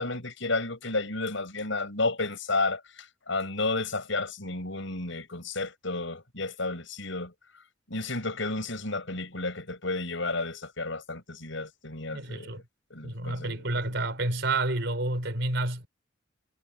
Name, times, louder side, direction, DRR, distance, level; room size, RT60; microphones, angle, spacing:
voice 1, 0.0-7.3 7.9-12.6 12.9-13.8, left 3 dB, 70° left, 7.8 m, -32 dB
voice 2, 12.1-12.6 13.0-15.9, right 2 dB, 65° right, 5.0 m, -29 dB
head